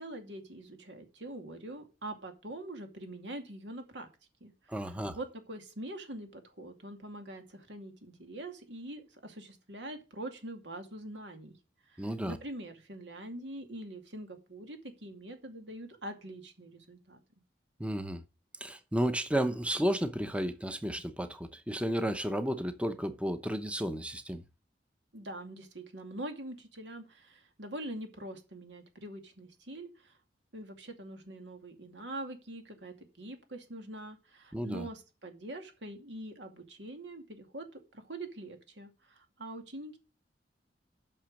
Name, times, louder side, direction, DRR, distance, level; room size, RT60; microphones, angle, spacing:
voice 1, 0.0-4.1 4.4-4.5 4.8-11.6 11.9-17.2 25.1-30.2 30.5-40.0, right 1 dB, 85° right, 2.4 m, -44 dB
voice 2, 4.7-5.2 12.0-12.4 17.8-18.2 18.6-24.4 34.5-34.9, equal, 5° right, 0.7 m, -32 dB
8.9 x 6.1 x 6.4 m
head